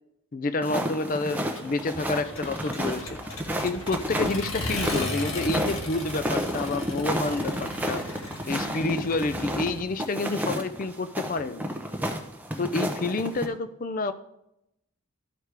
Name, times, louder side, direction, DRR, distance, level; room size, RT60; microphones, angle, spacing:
voice 1, 0.3-3.2 3.6-8.1 8.5-11.7 12.6-14.1, left 3 dB, 40° left, 12 dB, 0.4 m, -29 dB
sound 1, 0.6-13.5, equal, 10° right, 0.6 m, -31 dB
Accelerating revving vroom, 1.6-9.8, left 1 dB, 70° left, 1.3 m, -37 dB
12.5 x 4.8 x 3.3 m, 0.83 s
head